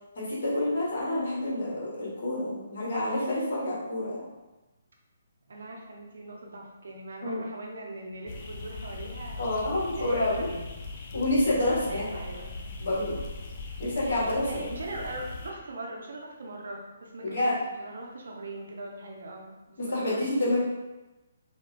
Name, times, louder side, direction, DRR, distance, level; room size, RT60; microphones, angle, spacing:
voice 1, 0.1-4.2 7.2-7.4 9.4-10.5 11.1-12.0 12.8-13.2 13.8-14.6 17.2-17.5 19.8-20.6, left 1 dB, 60° left, -7 dB, 1.3 m, -28 dB
voice 2, 5.5-10.7 11.9-12.5 14.5-20.6, right 2 dB, 70° right, 0 dB, 0.5 m, -41 dB
sound 1, 8.3-15.5, left 3 dB, 40° left, 0.3 m, -40 dB
2.8 x 2.2 x 2.2 m, 1.1 s
figure-of-eight pair, 145°, 0 cm